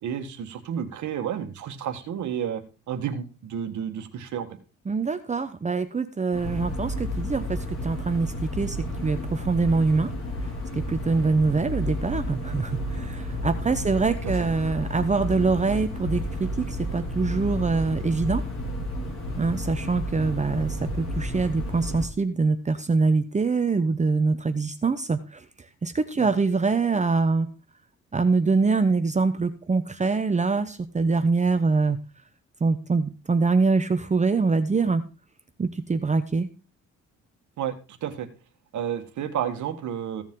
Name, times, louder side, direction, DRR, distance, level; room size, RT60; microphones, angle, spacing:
voice 1, 0.0-4.5 13.7-13.8 14.4-14.5 26.2-26.3 37.6-38.3 38.7-40.2, right 9 dB, 70° right, 7 dB, 1.6 m, -31 dB
voice 2, 4.9-8.8 9.0-10.1 10.7-18.4 19.4-25.4 25.8-27.5 28.1-32.0 32.6-35.0 35.6-36.5, right 4 dB, 25° right, 9 dB, 0.8 m, -24 dB
sound 1, 6.3-22.0, left 1 dB, 45° left, 4.2 m, -31 dB
15.5 x 7.1 x 3.8 m, 0.32 s
cardioid pair, 90°, 30 cm